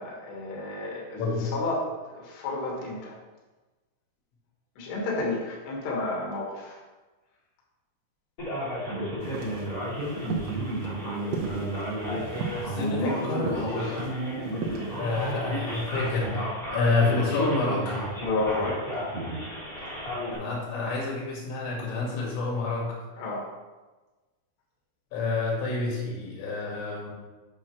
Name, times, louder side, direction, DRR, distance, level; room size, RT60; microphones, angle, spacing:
voice 1, 0.0-3.2 4.8-6.8 12.0-12.3 12.7-13.2 13.7-14.0 14.7-14.9 18.2-18.8 23.2-23.4, left 2 dB, 65° left, -4 dB, 3.7 m, -31 dB
voice 2, 1.2-1.6 12.1-14.1 15.0-18.1 20.3-23.0 25.1-27.1, left 3 dB, 85° left, -3 dB, 4.6 m, -29 dB
Male speech man speaking, 8.4-20.3, right 1 dB, 25° left, 2.5 m, -32 dB
sound 1, 9.2-16.3, right 5 dB, 85° right, 3.8 m, -38 dB
9.1 x 7.3 x 3.2 m, 1.2 s
omnidirectional pair, 5.7 m